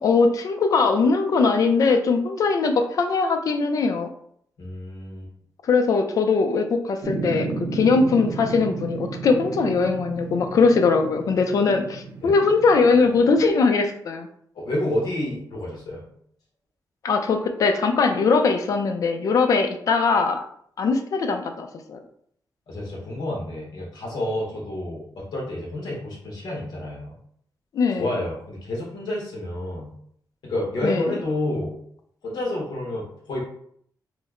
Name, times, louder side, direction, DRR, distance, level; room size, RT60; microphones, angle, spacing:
voice 1, 0.0-4.1 5.7-14.3 17.0-20.4 20.8-22.0 27.7-28.2 30.8-31.2, left 4 dB, 55° left, 6 dB, 0.4 m, -21 dB
voice 2, 4.6-5.3 11.6-11.7 12.2-12.4 14.5-16.1 22.7-27.1 28.0-29.9 30.4-31.8 32.2-33.4, left 1 dB, 75° left, -3 dB, 1.2 m, -29 dB
sound 1, 7.0-13.5, right 3 dB, 80° right, 0.7 m, -33 dB
3.1 x 2.1 x 3.6 m, 0.66 s
wide cardioid pair, 170°, 7 cm